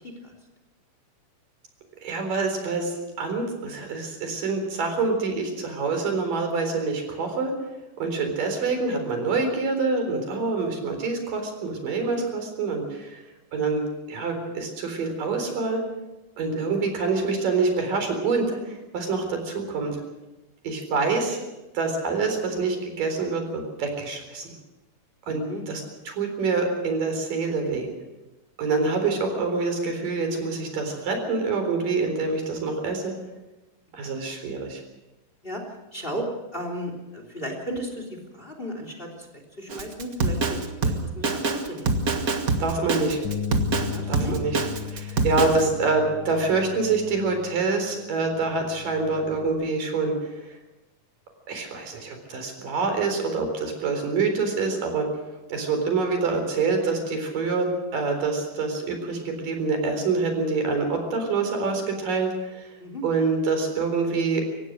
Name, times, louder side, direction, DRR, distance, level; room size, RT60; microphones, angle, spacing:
voice 1, 2.0-7.5 8.0-13.2 13.5-13.8 14.1-15.8 16.4-20.0 20.6-21.4 21.7-24.5 25.3-27.9 28.6-33.1 33.9-34.8 42.6-43.2 44.1-50.5 51.5-55.1 55.5-62.7 63.0-64.4, right 4 dB, 85° right, 5 dB, 5.7 m, -26 dB
voice 2, 25.3-25.6 34.0-34.1 35.4-35.6 35.9-36.2 36.5-39.3 39.6-41.9 42.9-43.0 43.9-44.3 62.8-63.0, equal, 15° left, 4 dB, 3.1 m, -35 dB
Drum kit, 39.7-45.6, right 3 dB, 40° right, 1.3 m, -25 dB
Bass guitar, 43.2-49.5, left 8 dB, 50° left, 1.4 m, -36 dB
24.5 x 17.0 x 6.5 m, 1.1 s
omnidirectional pair, 3.7 m